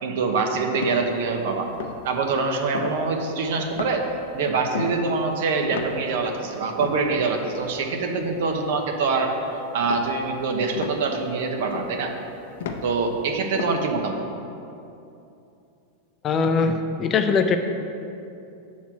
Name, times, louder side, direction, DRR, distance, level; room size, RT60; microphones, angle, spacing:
voice 1, 0.0-1.7 2.0-4.1 4.3-9.3 9.7-12.1 12.8-14.2, right 4 dB, 70° right, 4 dB, 1.0 m, -24 dB
sound 1, 0.8-1.4 1.6-2.2 2.6-3.5 3.7-4.2 4.5-6.4 6.7-9.3 9.7-13.1 13.4-13.9, left 5 dB, 75° left, 0.7 m, -35 dB
voice 2, 16.2-17.6, left 5 dB, 30° left, 6 dB, 0.5 m, -21 dB
7.3 x 4.3 x 5.9 m, 2.7 s
supercardioid pair, 135°, 0 cm